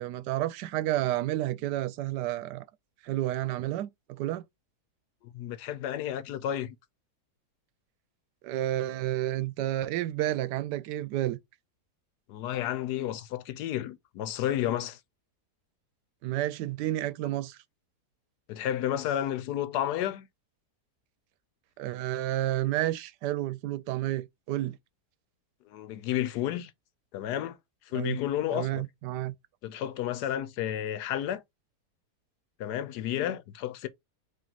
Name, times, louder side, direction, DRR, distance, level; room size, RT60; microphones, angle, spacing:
voice 1, 0.0-2.6 3.0-4.4 8.4-11.4 16.2-17.6 21.8-24.8 27.9-28.2 28.5-29.3, right 14 dB, 90° right, 1.2 m, -30 dB
voice 2, 5.2-6.7 12.3-15.0 18.5-20.3 25.7-26.7 27.1-27.6 27.9-28.8 29.6-31.4 32.6-33.9, left 11 dB, 80° left, 1.2 m, -31 dB
4.5 x 3.0 x 3.9 m
omnidirectional pair, 1.7 m